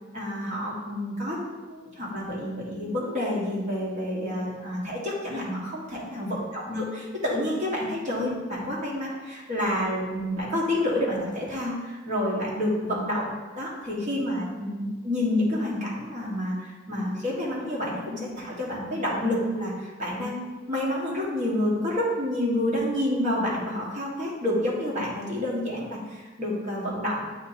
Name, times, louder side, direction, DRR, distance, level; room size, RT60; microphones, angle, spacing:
voice 1, 0.1-27.2, left 1 dB, 40° right, -5 dB, 1.5 m, -29 dB
8.2 x 2.9 x 4.1 m, 1.3 s
head